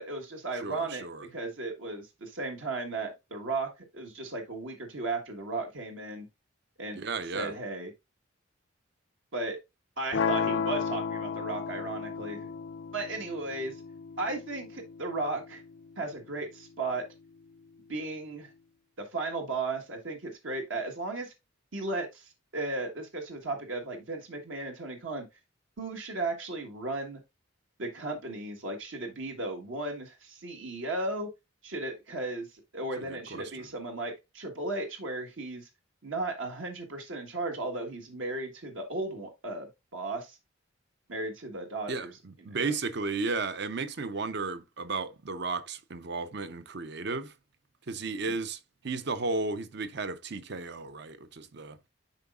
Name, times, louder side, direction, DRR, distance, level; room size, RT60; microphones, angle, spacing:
voice 1, 0.0-1.0 1.3-6.3 6.8-7.1 7.3-7.9 9.3-9.6 10.0-12.5 12.9-13.7 14.2-15.6 16.0-17.0 17.9-18.5 19.0-21.3 21.7-25.3 25.8-27.2 27.8-31.3 31.6-32.5 32.7-35.7 36.0-40.4 41.1-42.1 42.5-42.7 48.3-48.4, right 2 dB, 65° right, 1.3 m, -35 dB
voice 2, 0.5-1.3 7.0-7.5 33.0-33.6 41.9-47.3 47.9-51.8, right 3 dB, 50° right, 0.6 m, -34 dB
sound 1, 10.1-16.2, left 6 dB, 60° left, 0.4 m, -34 dB
10.5 x 4.0 x 2.4 m
head